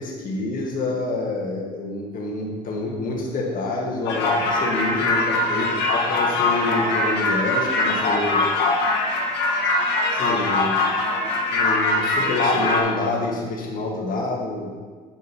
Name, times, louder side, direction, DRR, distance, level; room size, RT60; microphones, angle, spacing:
voice 1, 0.0-8.4 10.1-14.7, left 2 dB, 55° left, -2 dB, 1.8 m, -27 dB
sound 1, 4.0-12.8, left 2 dB, 85° left, 1.4 m, -22 dB
8.7 x 5.1 x 4.2 m, 1.5 s
cardioid pair, 110°, 17 cm